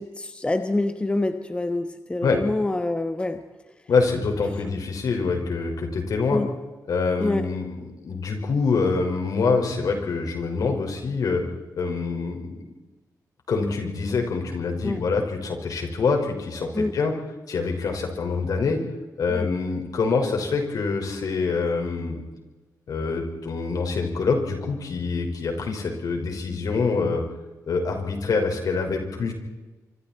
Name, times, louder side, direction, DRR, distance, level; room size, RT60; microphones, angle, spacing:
voice 1, 0.0-3.4 6.3-6.5 7.2-7.5 14.8-15.0 16.7-16.9 19.3-19.5, left 2 dB, 15° left, 8 dB, 1.3 m, -26 dB
voice 2, 3.9-6.4 6.9-11.4 11.8-12.6 13.5-17.1 17.5-18.8 19.2-22.2 22.9-27.2 27.7-29.3, left 4 dB, 65° left, 3 dB, 5.7 m, -25 dB
27.0 x 25.5 x 4.6 m, 1.2 s
cardioid pair, 100°, 7 cm